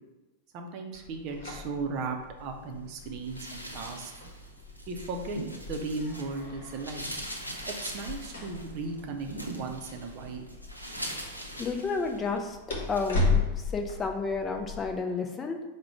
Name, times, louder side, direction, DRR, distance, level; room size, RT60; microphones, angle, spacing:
voice 1, 0.5-4.1 4.9-5.4 5.7-7.1 7.6-10.4, right 3 dB, 40° right, 3 dB, 0.6 m, -36 dB
sound 1, 0.9-14.9, left 3 dB, 60° left, 0.9 m, -36 dB
sound 2, 3.2-6.4 6.7-12.4 12.8-13.2, right 1 dB, 90° left, 0.6 m, -41 dB
voice 2, 11.6-12.6 12.9-13.4 13.7-15.6, left 4 dB, 20° left, 4 dB, 0.5 m, -31 dB
4.8 x 2.2 x 4.8 m, 1.0 s
figure-of-eight pair, 90°, 0 cm